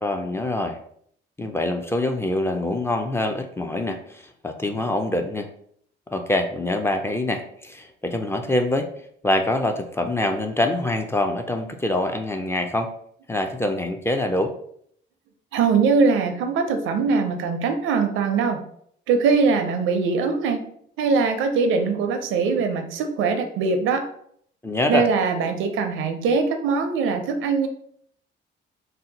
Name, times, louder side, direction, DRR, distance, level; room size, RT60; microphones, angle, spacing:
voice 1, 0.0-0.8 1.4-5.5 6.1-8.9 9.2-12.9 13.3-14.5 24.6-25.1, left 1 dB, 10° left, 5 dB, 0.4 m, -25 dB
voice 2, 15.5-18.6 19.1-20.7 21.0-24.1 24.9-27.7, right 5 dB, 85° right, 6 dB, 0.5 m, -22 dB
2.7 x 2.1 x 4.0 m, 0.65 s
cardioid pair, 90°, 20 cm